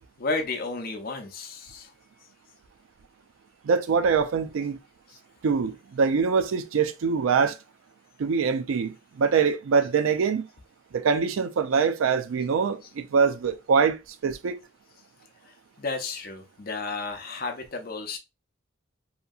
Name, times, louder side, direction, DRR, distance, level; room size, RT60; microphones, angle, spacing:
voice 1, 0.2-1.9 5.1-5.2 15.5-18.2, left 3 dB, 50° left, 0.6 m, -33 dB
voice 2, 3.6-4.8 5.4-7.6 8.2-10.5 10.9-14.6, right 5 dB, 90° right, 0.4 m, -24 dB
2.8 x 2.6 x 2.3 m
head